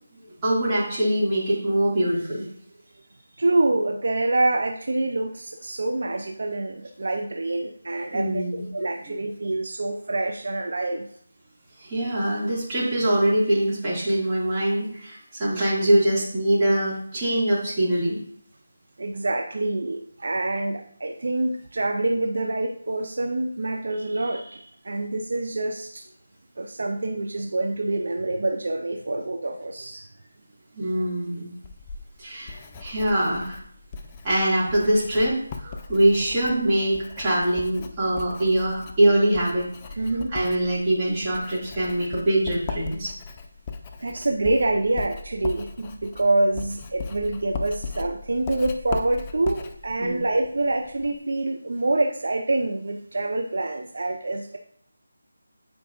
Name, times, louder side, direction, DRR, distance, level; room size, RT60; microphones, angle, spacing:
voice 1, 0.4-2.4 8.1-8.7 11.8-18.2 30.7-31.5 32.2-33.6 34.2-39.7 40.3-43.1 50.0-50.2, right 1 dB, 20° right, -7 dB, 2.2 m, -23 dB
voice 2, 3.4-11.1 19.0-26.0 26.6-30.0 40.0-40.3 44.0-54.6, right 2 dB, 65° right, 4 dB, 0.5 m, -26 dB
Writing, 31.6-51.2, left 4 dB, 20° left, 0.5 m, -38 dB
8.6 x 4.7 x 2.5 m, 0.63 s
figure-of-eight pair, 160°, 0 cm